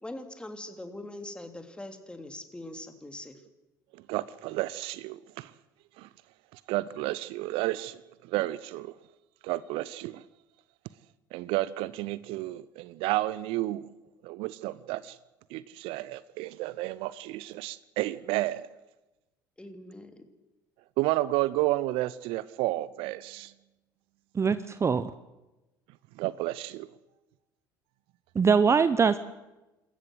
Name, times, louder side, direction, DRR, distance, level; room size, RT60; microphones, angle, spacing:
voice 1, 0.0-3.4 19.6-20.2, left 1 dB, 10° left, 7 dB, 2.9 m, -42 dB
voice 2, 4.1-5.5 6.0-6.1 6.5-8.9 9.4-10.2 11.3-13.8 14.2-15.2 15.5-18.7 21.0-23.5 26.2-26.9, right 17 dB, 60° right, 18 dB, 0.6 m, -31 dB
voice 3, 24.3-25.1 28.3-29.2, right 5 dB, 25° right, 14 dB, 0.8 m, -23 dB
27.0 x 14.5 x 7.9 m, 1.0 s
figure-of-eight pair, 60°, 10 cm